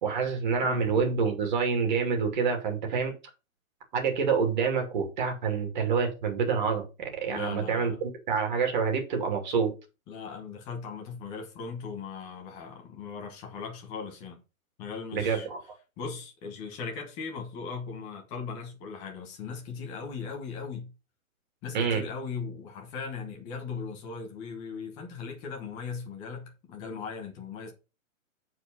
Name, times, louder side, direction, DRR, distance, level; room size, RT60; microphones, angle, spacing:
voice 1, 0.0-3.1 3.9-9.7 15.1-15.6 21.7-22.1, right 5 dB, 35° right, 2.7 m, -27 dB
voice 2, 0.6-1.1 7.3-8.0 10.1-14.4 14.8-15.5 16.0-20.9 21.6-27.7, left 5 dB, 10° left, 1.0 m, -38 dB
8.0 x 4.7 x 5.4 m
hypercardioid pair, 170°, 42 cm